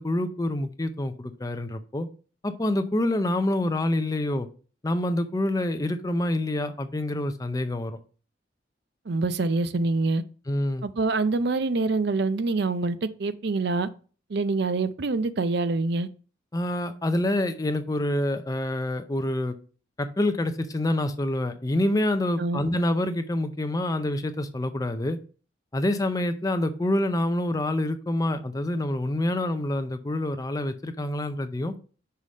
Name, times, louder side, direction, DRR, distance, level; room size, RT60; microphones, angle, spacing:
voice 1, 0.0-2.1 2.4-4.5 4.8-8.0 10.5-10.9 16.5-19.5 20.0-25.2 25.7-31.7, left 1 dB, 20° left, 0.5 m, -27 dB
voice 2, 9.1-10.2 10.8-13.9 14.3-16.1 22.4-22.6, right 3 dB, 60° right, 0.5 m, -25 dB
5.6 x 4.9 x 5.2 m
head